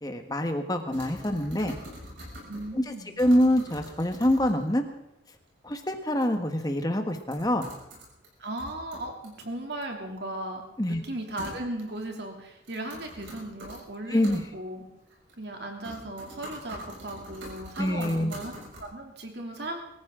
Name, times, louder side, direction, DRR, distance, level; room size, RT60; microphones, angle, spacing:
voice 1, 0.0-1.8 2.7-4.8 5.6-7.7 10.8-11.0 14.1-14.4 17.8-18.4, left 1 dB, 20° left, 5 dB, 1.4 m, -25 dB
sound 1, 0.9-2.8 3.2-4.7 6.2-6.3 6.6-6.7 7.3-8.3 8.6-9.4 11.4-12.0 12.6-13.8 14.2-14.4 15.1-15.5 15.8-18.8, equal, 80° right, 6.6 m, -44 dB
voice 2, 2.5-3.1 8.4-10.6 10.9-14.8 15.4-18.5 18.8-19.8, right 1 dB, 60° right, 2 dB, 2.8 m, -37 dB
23.5 x 14.5 x 3.8 m, 0.83 s
head